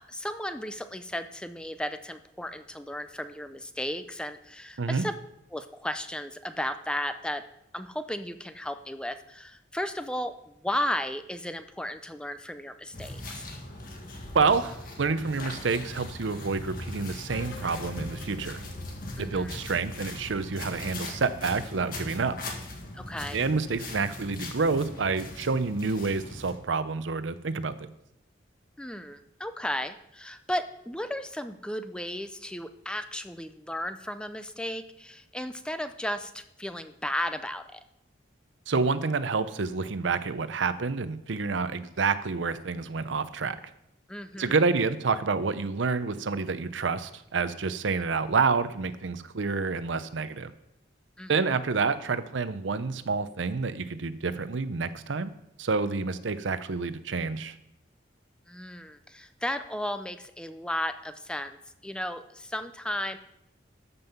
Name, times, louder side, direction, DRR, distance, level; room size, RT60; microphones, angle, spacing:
voice 1, 0.0-5.1 5.5-7.4 7.7-13.5 19.2-19.6 22.9-23.4 28.8-37.8 44.1-44.6 51.2-51.5 58.5-61.6 61.8-63.2, left 1 dB, 5° left, 10 dB, 0.4 m, -34 dB
sound 1, 12.9-26.5, left 2 dB, 45° left, 1.8 m, -40 dB
voice 2, 14.3-18.6 19.2-22.4 23.3-27.9 38.7-43.6 44.4-50.5 51.3-55.3 55.6-57.5, right 4 dB, 80° right, 13 dB, 0.6 m, -28 dB
sound 2, 17.3-22.2, left 1 dB, 70° left, 1.2 m, -45 dB
13.5 x 5.5 x 5.6 m, 0.81 s
head